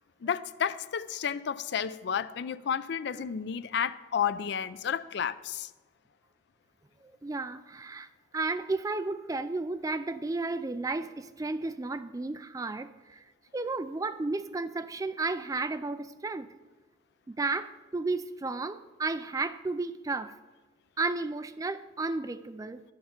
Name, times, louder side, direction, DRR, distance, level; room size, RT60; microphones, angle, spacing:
voice 1, 0.2-5.7, left 7 dB, 60° left, 0.4 m, -31 dB
voice 2, 7.2-8.1 8.3-13.2 13.5-16.5 17.3-20.3 21.0-22.8, right 3 dB, 20° right, 0.3 m, -33 dB
11.5 x 6.6 x 5.8 m
head